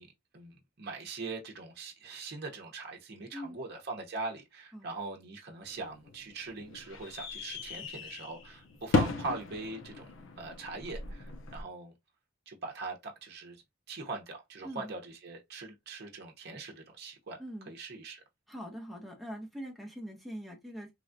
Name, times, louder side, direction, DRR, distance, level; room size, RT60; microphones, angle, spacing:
voice 1, 0.0-10.1 10.4-11.9 12.5-13.6 13.9-17.4 17.7-18.2, right 3 dB, 55° right, 0.7 m, -41 dB
sound 1, 5.6-11.6, left 3 dB, 75° left, 0.6 m, -36 dB
voice 2, 17.4-17.7 18.5-20.9, equal, ahead, 0.8 m, -42 dB
3.2 x 2.3 x 2.5 m
head